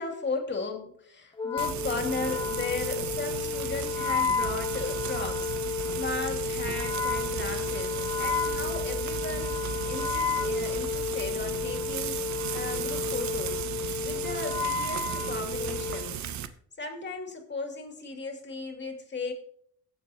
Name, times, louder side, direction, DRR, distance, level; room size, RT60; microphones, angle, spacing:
voice 1, 0.0-12.2 12.5-13.7 14.0-16.2 16.8-19.3, left 4 dB, 35° left, 3 dB, 2.5 m, -36 dB
Wind instrument woodwind instrument, 1.4-16.1, left 6 dB, 15° left, 1.3 m, -32 dB
Frying (food), 1.6-16.5, right 9 dB, 65° right, 0.9 m, -35 dB
16.5 x 7.4 x 2.9 m, 0.64 s
cardioid pair, 90°, 30 cm